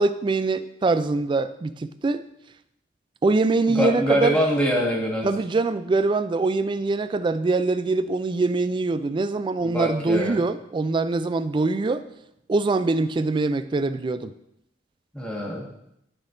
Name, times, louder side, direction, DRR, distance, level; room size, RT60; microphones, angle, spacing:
voice 1, 0.0-2.2 3.2-4.4 5.2-12.0 12.5-14.3, right 3 dB, 25° right, 12 dB, 0.3 m, -23 dB
voice 2, 3.7-5.3 9.6-10.4 15.1-15.7, equal, 5° left, -4 dB, 1.5 m, -24 dB
12.5 x 4.2 x 2.6 m, 0.80 s
head